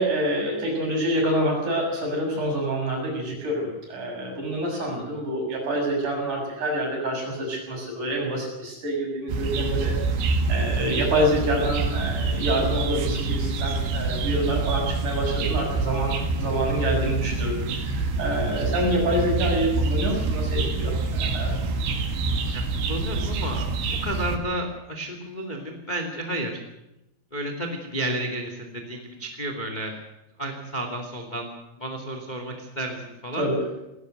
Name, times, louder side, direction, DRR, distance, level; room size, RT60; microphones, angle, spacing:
voice 1, 0.0-10.0 10.5-21.7 33.3-33.7, right 1 dB, 40° right, 0 dB, 7.9 m, -27 dB
sound 1, 9.3-24.4, right 3 dB, 85° right, 4.5 m, -26 dB
voice 2, 22.5-23.7 24.0-26.6 27.3-29.9 30.4-31.5 31.8-33.5, right 1 dB, 15° left, 4 dB, 1.5 m, -32 dB
19.5 x 17.0 x 8.0 m, 0.92 s
omnidirectional pair, 5.2 m